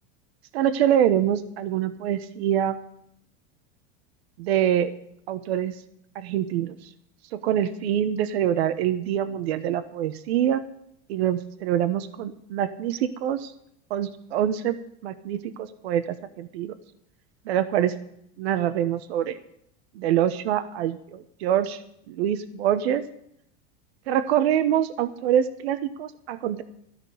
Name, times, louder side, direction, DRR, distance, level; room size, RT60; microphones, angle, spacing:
voice 1, 0.5-2.8 4.4-4.9 5.3-5.7 6.1-6.8 7.3-10.6 11.1-13.5 13.9-14.8 15.0-16.7 17.5-17.9 18.4-19.4 19.9-21.8 22.1-23.0 24.1-26.6, right 10 dB, 85° right, 11 dB, 1.1 m, -25 dB
14.0 x 6.2 x 9.3 m, 0.72 s
supercardioid pair, 145°, 31 cm